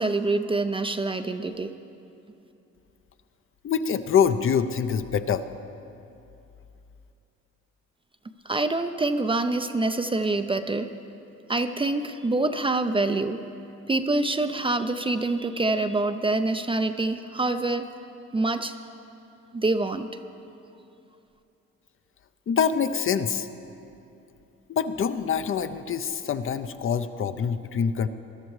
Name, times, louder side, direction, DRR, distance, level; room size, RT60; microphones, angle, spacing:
voice 1, 0.0-1.7 8.5-10.9 11.5-13.4 13.9-17.9 18.3-18.7 19.5-20.2, right 2 dB, 20° right, 8 dB, 0.4 m, -26 dB
voice 2, 3.6-5.4 22.5-23.5 24.7-28.1, left 7 dB, 45° left, 10 dB, 0.6 m, -25 dB
20.5 x 12.0 x 3.2 m, 2.8 s
cardioid pair, 90°, 30 cm